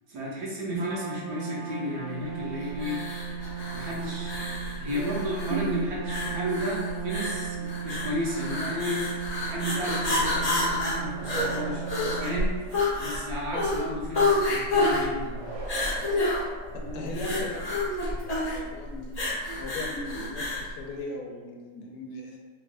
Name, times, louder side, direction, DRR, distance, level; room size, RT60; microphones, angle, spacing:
voice 1, 0.1-3.0 3.7-4.4 4.8-9.1 9.4-11.8 12.2-12.6 13.0-15.5 16.8-17.0 17.3-17.5, equal, 65° right, -5 dB, 1.2 m, -33 dB
Trumpet, 0.7-12.9, right 8 dB, 90° right, 1.3 m, -37 dB
sound 1, 2.8-20.7, left 2 dB, 30° left, 0.8 m, -29 dB
sound 2, 11.1-13.2 15.3-17.3, right 2 dB, 45° right, 0.9 m, -42 dB
voice 2, 16.7-17.6 18.5-19.1 19.6-22.4, left 2 dB, 75° left, 0 dB, 1.1 m, -38 dB
3.1 x 3.0 x 2.5 m, 1.4 s
omnidirectional pair, 1.8 m